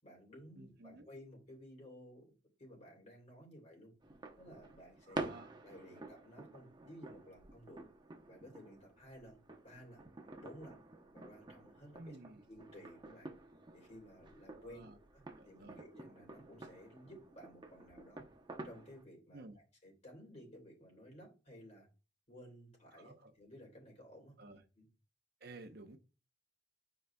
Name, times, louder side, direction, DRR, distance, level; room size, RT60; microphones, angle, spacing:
voice 1, 0.0-2.2 2.6-3.9 4.4-5.3 5.6-7.9 8.3-10.0 10.4-10.8 11.1-12.2 12.5-13.3 13.7-18.2 18.6-21.9 22.3-24.4 24.7-24.9, equal, 40° left, 3.1 m, -55 dB
voice 2, 0.6-1.1 5.1-5.5 12.0-12.4 14.6-15.0 15.4-15.8 19.3-19.6 23.0-23.3 24.4-24.6 25.4-26.0, right 2 dB, 60° right, 0.8 m, -53 dB
sound 1, 4.0-19.0, right 2 dB, 25° right, 0.8 m, -50 dB
9.2 x 4.8 x 2.3 m
head